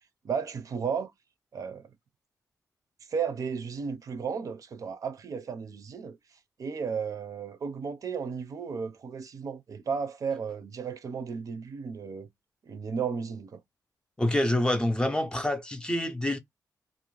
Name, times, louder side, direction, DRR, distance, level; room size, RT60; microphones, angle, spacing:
voice 1, 0.2-1.1 1.5-1.9 3.1-6.2 6.6-12.3 12.6-13.6, right 6 dB, 60° right, 0.5 m, -34 dB
voice 2, 14.2-16.4, left 1 dB, 15° left, 0.5 m, -26 dB
2.5 x 2.1 x 3.0 m
wide cardioid pair, 125°, 7 cm